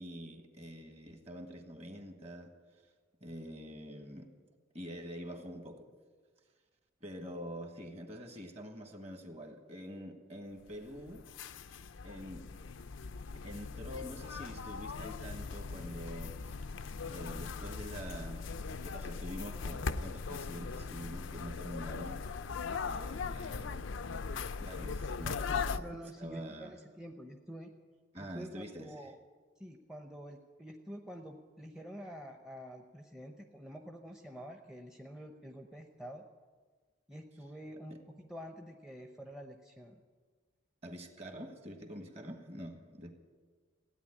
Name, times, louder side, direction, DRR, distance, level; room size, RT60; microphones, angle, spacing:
voice 1, 0.0-2.5 3.2-4.3 4.7-5.9 7.0-11.2 12.0-12.5 13.4-16.4 17.1-18.4 18.7-22.2 22.8-23.9 24.6-25.9 26.2-26.7 28.1-29.1 37.9-38.0 40.8-43.2, equal, 35° right, 5 dB, 1.6 m, -46 dB
sound 1, 10.7-25.8, left 5 dB, 85° left, 0.6 m, -39 dB
voice 2, 25.8-27.7 28.2-29.2 29.6-36.2 37.1-40.0, equal, 5° right, 4 dB, 0.7 m, -48 dB
16.0 x 9.2 x 9.7 m, 1.5 s
head